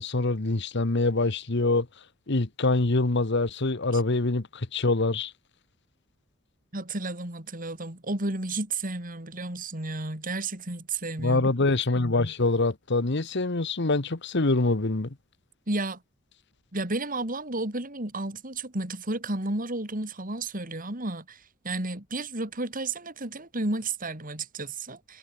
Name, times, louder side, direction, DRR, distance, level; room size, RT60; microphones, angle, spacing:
voice 1, 0.0-1.9 2.3-5.3 11.2-15.1, left 2 dB, 60° left, 1.3 m, -25 dB
voice 2, 6.7-11.5 15.7-16.0 16.7-25.2, right 2 dB, 45° right, 4.1 m, -32 dB
head